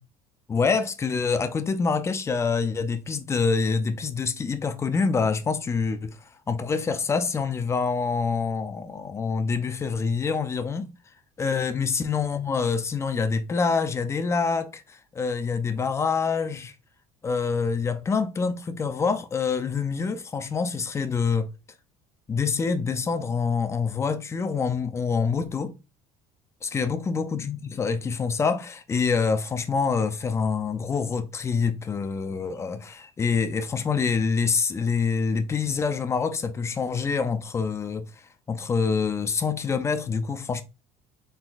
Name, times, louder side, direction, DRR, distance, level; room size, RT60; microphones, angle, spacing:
voice 1, 0.5-10.9 11.4-16.7 17.2-21.5 22.3-25.7 26.6-38.1 38.5-40.6, left 5 dB, 20° left, 0.4 m, -26 dB
3.9 x 3.9 x 2.5 m
cardioid pair, 120°, 14 cm